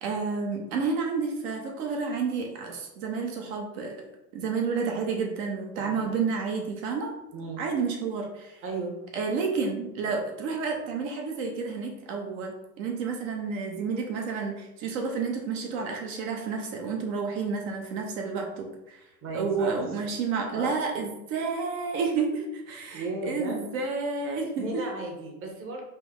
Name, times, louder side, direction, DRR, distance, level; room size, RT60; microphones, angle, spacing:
voice 1, 0.0-3.9 4.3-7.1 7.6-8.6 9.1-19.0 19.3-24.8, right 5 dB, 60° right, 2 dB, 0.9 m, -30 dB
voice 2, 5.7-6.1 7.3-7.6 8.6-8.9 19.2-19.8 20.5-20.7 22.9-23.6 24.6-25.8, right 2 dB, 30° right, 0 dB, 0.9 m, -35 dB
5.4 x 2.1 x 3.6 m, 0.90 s
supercardioid pair, 140°, 45 cm